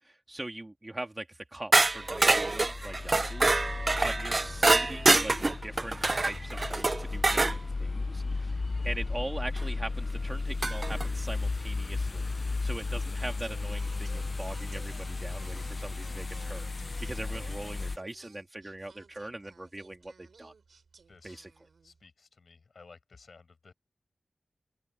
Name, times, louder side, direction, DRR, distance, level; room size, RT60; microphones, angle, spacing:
voice 1, 0.0-3.5 4.0-5.4 5.6-20.5 21.2-21.5, right 1 dB, 25° right, 1.9 m, -41 dB
sound 1, 1.7-7.6 9.6-9.7 10.6-11.1, right 3 dB, 40° right, 0.4 m, -25 dB
sound 2, 1.8-18.0, left 3 dB, 45° left, 0.4 m, -35 dB
Singing, 13.4-22.1, right 5 dB, 85° right, 4.0 m, -56 dB
voice 2, 21.1-21.4 21.8-23.7, left 4 dB, 70° left, 5.7 m, -55 dB
open air
wide cardioid pair, 100°, 0 cm